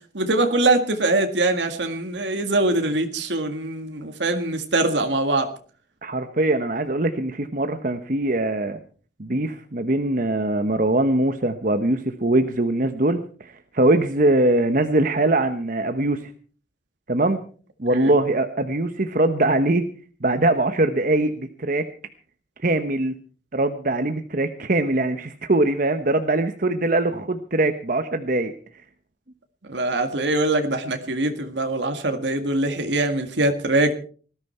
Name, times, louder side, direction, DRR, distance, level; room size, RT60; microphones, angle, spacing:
voice 1, 0.1-5.5 17.9-18.1 29.7-34.0, right 2 dB, 85° right, 6 dB, 1.8 m, -23 dB
voice 2, 6.0-8.8 9.2-16.3 17.1-17.4 17.8-19.9 20.2-21.9 22.6-23.1 23.5-28.5, right 2 dB, 50° right, 8 dB, 1.0 m, -22 dB
19.0 x 13.5 x 4.5 m, 0.42 s
head